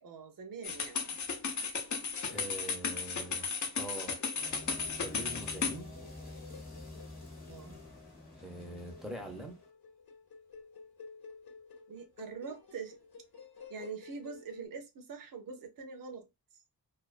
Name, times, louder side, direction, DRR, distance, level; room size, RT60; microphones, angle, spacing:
voice 1, 0.0-1.2 7.5-7.7 11.9-13.0 13.7-16.3, right 5 dB, 60° right, 0.6 m, -44 dB
sound 1, 0.6-5.8, left 5 dB, 50° left, 0.5 m, -35 dB
sound 2, 2.1-14.7, left 4 dB, 75° left, 0.8 m, -54 dB
voice 2, 2.3-4.2 5.0-5.9 8.4-9.6, right 1 dB, ahead, 0.5 m, -44 dB
sound 3, 4.3-9.7, left 2 dB, 25° left, 0.9 m, -49 dB
2.3 x 2.3 x 2.3 m
wide cardioid pair, 145°, 38 cm